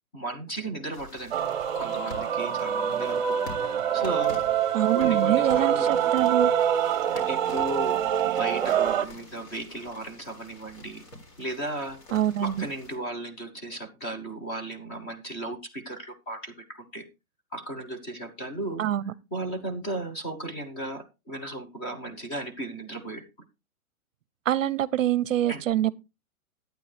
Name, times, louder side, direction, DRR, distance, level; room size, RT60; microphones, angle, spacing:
voice 1, 0.1-1.4 1.7-3.4 3.9-4.4 4.9-5.9 7.1-11.0 11.4-12.0 12.4-17.0 17.5-18.9 19.3-23.2 25.5-25.6, right 2 dB, 15° left, 1.0 m, -35 dB
sound 1, 0.9-13.0, left 1 dB, 50° left, 3.7 m, -47 dB
Male singing / Female singing / Musical instrument, 1.3-9.0, right 9 dB, 35° right, 0.9 m, -25 dB
voice 2, 4.7-6.5 12.1-12.7 18.8-19.1 24.5-25.9, right 12 dB, 65° right, 0.6 m, -25 dB
11.5 x 9.1 x 3.3 m
hypercardioid pair, 180°, 42 cm